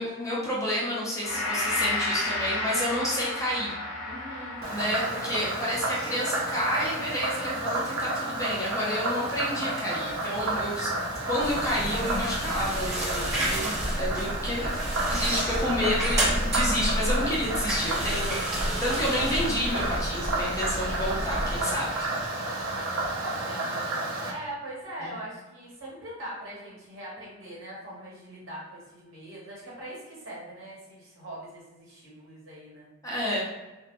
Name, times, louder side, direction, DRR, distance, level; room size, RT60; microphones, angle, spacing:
voice 1, 0.0-3.7 4.7-10.9 11.3-22.1 25.0-25.1 33.0-33.4, left 1 dB, 15° left, -6 dB, 0.6 m, -30 dB
Gong, 1.2-9.6 10.0-10.2, left 2 dB, 80° left, 0.5 m, -34 dB
voice 2, 4.0-4.8 9.6-10.0 23.2-32.9, right 1 dB, 70° right, -6 dB, 1.0 m, -42 dB
Frog, 4.6-24.3, right 2 dB, 90° right, 0.5 m, -31 dB
sound 1, 11.4-21.6, equal, 15° right, 1.0 m, -30 dB
2.1 x 2.1 x 2.8 m, 1.1 s
head